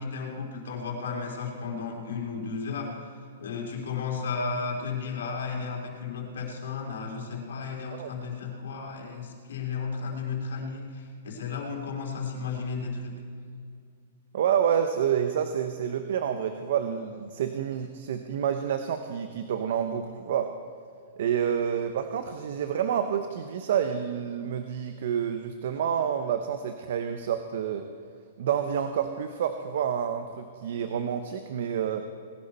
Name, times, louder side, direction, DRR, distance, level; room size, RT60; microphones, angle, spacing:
voice 1, 0.0-3.1 3.4-13.2, left 5 dB, 75° left, 0 dB, 3.5 m, -34 dB
voice 2, 14.3-20.5 21.2-27.9 28.4-32.0, right 8 dB, 65° right, 8 dB, 0.8 m, -28 dB
19.0 x 11.0 x 4.3 m, 2.3 s
hypercardioid pair, 145°, 0 cm